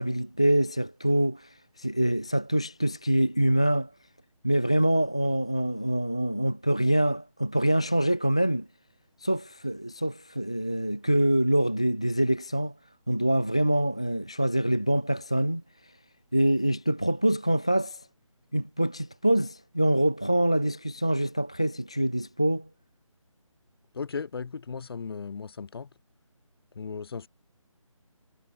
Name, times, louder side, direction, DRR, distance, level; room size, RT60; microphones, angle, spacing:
voice 1, 0.0-3.9 4.4-8.7 9.2-12.7 13.1-15.9 16.3-18.1 18.5-22.7, right 1 dB, 10° left, 0.3 m, -25 dB
voice 2, 23.9-25.9 26.7-27.3, left 5 dB, 45° left, 3.3 m, -36 dB
figure-of-eight pair, 160°, 17 cm